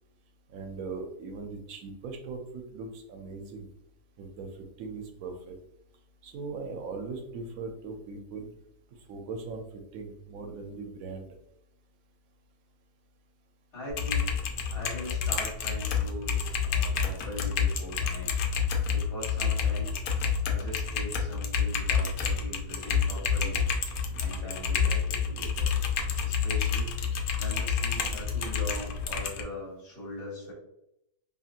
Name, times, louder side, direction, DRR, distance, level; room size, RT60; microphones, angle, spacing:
voice 1, 0.5-3.7 4.2-4.5 4.8-5.6 6.2-8.5 9.1-9.6 9.9-11.3, right 4 dB, 75° right, 4 dB, 1.0 m, -39 dB
voice 2, 13.7-14.3 14.7-18.4 18.9-20.0 20.4-25.8 26.2-27.0 27.4-30.5, equal, 45° left, -3 dB, 1.4 m, -41 dB
Typing, 13.9-29.4, left 6 dB, 85° left, 1.1 m, -29 dB
2.8 x 2.8 x 2.4 m, 0.80 s
omnidirectional pair, 1.5 m